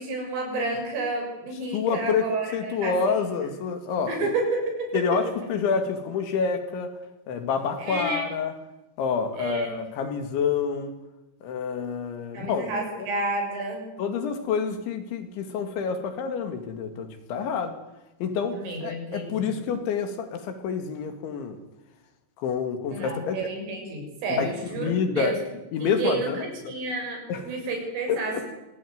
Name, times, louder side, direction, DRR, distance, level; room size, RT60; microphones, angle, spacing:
voice 1, 0.0-2.9 4.1-5.0 7.8-8.2 9.4-9.7 12.3-13.8 18.5-19.5 22.9-25.4 25.8-28.4, right 2 dB, 85° right, 3 dB, 9.5 m, -30 dB
voice 2, 1.7-4.3 4.9-6.9 7.3-8.5 9.0-10.9 11.4-12.7 14.0-17.8 18.2-21.6 22.4-23.5 24.4-25.4 25.7-26.7 27.3-27.5 28.1-28.4, left 6 dB, 70° left, 8 dB, 4.6 m, -28 dB
24.5 x 18.5 x 9.6 m, 0.97 s
omnidirectional pair, 5.6 m